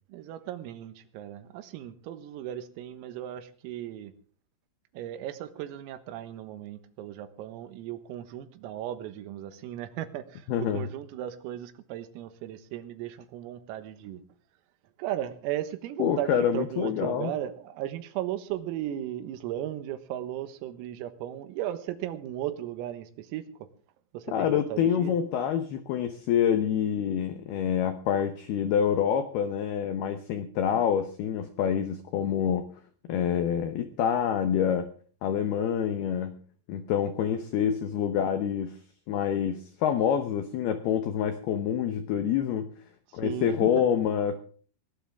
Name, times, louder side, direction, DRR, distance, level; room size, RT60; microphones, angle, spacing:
voice 1, 0.1-4.1 4.9-14.2 15.0-23.7 24.1-25.1 43.2-43.9, right 12 dB, 90° right, 11 dB, 4.0 m, -36 dB
voice 2, 10.5-10.9 16.0-17.3 24.3-32.7 33.1-34.9 35.2-36.4 36.7-38.8 39.1-42.7 43.1-44.4, left 8 dB, 80° left, 9 dB, 2.3 m, -27 dB
18.0 x 18.0 x 3.5 m, 0.43 s
omnidirectional pair, 6.0 m